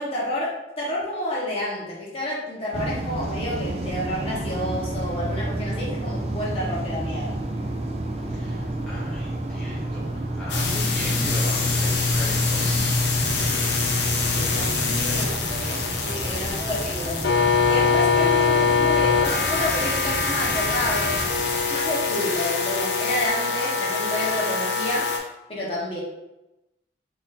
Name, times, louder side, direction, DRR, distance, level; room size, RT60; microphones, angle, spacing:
voice 1, 0.0-7.4 14.3-17.3 17.7-21.2 21.5-25.1 25.5-26.0, left 1 dB, 30° left, -5 dB, 1.2 m, -29 dB
sound 1, 2.7-22.2, right 1 dB, 35° right, 0.5 m, -31 dB
voice 2, 8.3-10.1 10.4-13.0 14.5-14.8 16.2-16.6, left 1 dB, 5° left, -10 dB, 0.8 m, -37 dB
sound 2, 10.5-25.2, left 4 dB, 70° left, 0.9 m, -23 dB
4.0 x 2.8 x 4.0 m, 0.95 s
head